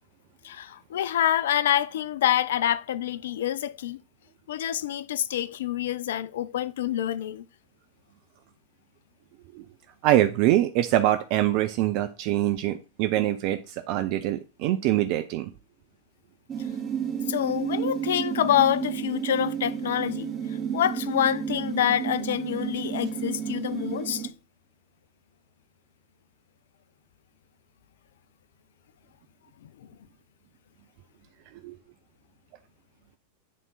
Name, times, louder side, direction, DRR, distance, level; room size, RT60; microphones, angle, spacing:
voice 1, 0.4-4.0 4.5-7.5 17.3-24.3 29.6-29.7, left 11 dB, 60° left, 0.4 m, -27 dB
voice 2, 10.0-15.5 31.6-31.7, right 14 dB, 45° right, 0.5 m, -24 dB
sound 1, 16.5-24.3, right 8 dB, 25° right, 1.8 m, -31 dB
8.3 x 3.6 x 4.0 m
figure-of-eight pair, 90°, 0 cm